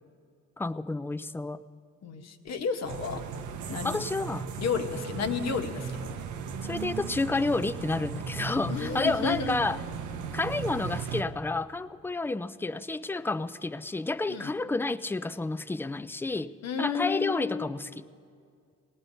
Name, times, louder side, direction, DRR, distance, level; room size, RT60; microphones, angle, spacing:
voice 1, 0.6-1.6 3.8-4.5 6.6-9.8 10.3-16.5 16.8-18.1, left 3 dB, 10° left, 14 dB, 0.3 m, -30 dB
voice 2, 2.0-3.2 3.7-4.0 4.6-6.2 8.7-9.6 14.3-14.5 16.6-17.7, left 6 dB, 60° left, 6 dB, 1.1 m, -32 dB
sound 1, 2.8-11.2, right 6 dB, 75° right, 0.7 m, -37 dB
19.5 x 18.5 x 2.7 m, 2.2 s
cardioid pair, 90°, 30 cm